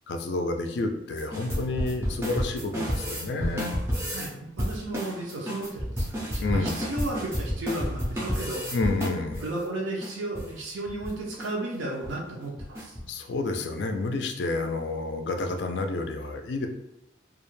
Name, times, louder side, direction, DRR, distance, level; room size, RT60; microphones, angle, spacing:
voice 1, 0.1-3.7 6.4-6.8 8.7-9.5 13.1-16.7, left 2 dB, 60° left, 5 dB, 0.3 m, -29 dB
sound 1, 1.2-4.3 4.6-9.6 10.0-10.1 10.4-10.5 10.9-11.1 11.4-11.5 11.9-12.1 12.6-13.0, equal, 15° right, 0.4 m, -31 dB
voice 2, 4.1-8.6 9.4-13.0, right 2 dB, 80° right, -2 dB, 0.5 m, -34 dB
2.3 x 2.1 x 3.1 m, 0.86 s
head